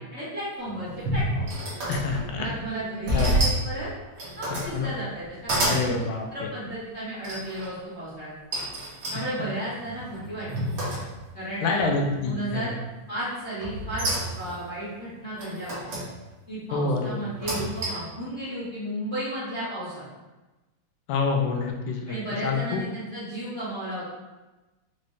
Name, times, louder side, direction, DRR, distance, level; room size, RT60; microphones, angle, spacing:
voice 1, 0.1-1.6 2.3-3.9 4.4-5.9 6.3-8.3 9.1-10.7 11.3-11.9 12.2-12.7 13.1-15.9 16.5-20.0 22.1-24.0, right 1 dB, 50° left, -12 dB, 0.7 m, -34 dB
sound 1, 0.7-2.5 3.1-3.7 4.1-4.7 5.2-5.9 7.2-7.7 8.5-11.4 11.8-12.3 13.6-14.6 15.4-16.1 17.2-18.1, right 1 dB, 60° right, 1.2 m, -29 dB
voice 2, 1.9-2.5 3.1-3.4 4.5-4.9 5.7-6.5 9.1-9.3 11.6-12.7 16.7-17.3 21.1-22.2 22.4-22.8, left 4 dB, 85° left, 2 dB, 2.0 m, -27 dB
5.2 x 3.1 x 2.7 m, 1.1 s
omnidirectional pair, 3.3 m